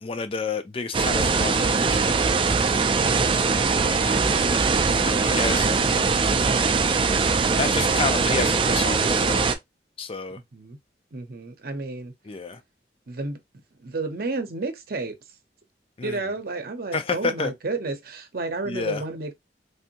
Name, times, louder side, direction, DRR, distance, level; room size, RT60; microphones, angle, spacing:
voice 1, 0.0-2.1 3.9-4.4 5.0-6.0 7.5-9.5 10.0-10.4 12.3-12.6 16.0-16.2 16.9-17.5 18.7-19.0, left 4 dB, 30° left, 0.4 m, -30 dB
sound 1, 0.9-9.5, right 4 dB, 30° right, 0.4 m, -21 dB
voice 2, 3.0-3.5 3.8-4.2 10.5-10.8 11.1-12.1 13.1-13.4 13.8-15.2 16.0-19.3, right 3 dB, 55° right, 0.7 m, -31 dB
3.4 x 2.6 x 2.8 m
head